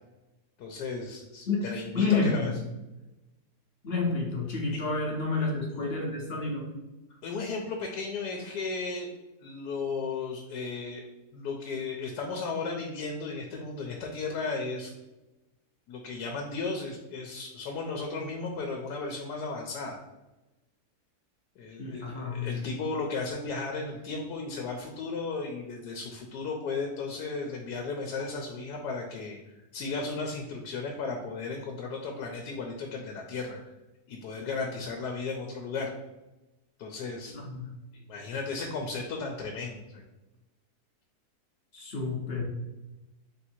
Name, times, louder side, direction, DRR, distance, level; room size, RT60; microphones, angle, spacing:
voice 1, 0.6-2.5 4.7-4.8 5.4-5.5 7.2-9.1 9.4-11.0 11.3-14.9 15.9-20.0 21.6-29.4 29.7-33.6 34.1-35.9 36.8-37.3 37.9-40.0, left 4 dB, 85° left, 2 dB, 1.2 m, -35 dB
voice 2, 1.9-2.6 3.8-6.7 21.8-22.6 37.3-37.6 41.7-42.4, left 4 dB, 50° left, -1 dB, 0.8 m, -29 dB
3.6 x 2.7 x 4.3 m, 1.0 s
omnidirectional pair, 1.7 m